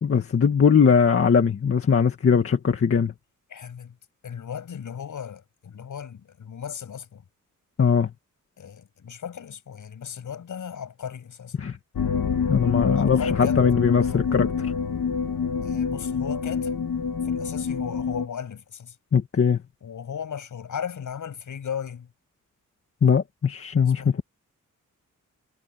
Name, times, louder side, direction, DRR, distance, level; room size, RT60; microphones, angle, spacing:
voice 1, 0.0-3.1 7.8-8.1 11.6-11.8 12.5-14.7 19.1-19.6 23.0-24.0, left 6 dB, 45° left, 1.9 m, -20 dB
voice 2, 3.5-4.0 4.2-7.2 8.6-11.6 13.0-13.6 14.0-14.2 15.6-16.9 17.2-19.0 19.8-22.1 24.0-24.2, left 8 dB, 70° left, 6.8 m, -36 dB
sound 1, 11.9-18.3, left 6 dB, 85° left, 2.6 m, -26 dB
wide cardioid pair, 170°, 32 cm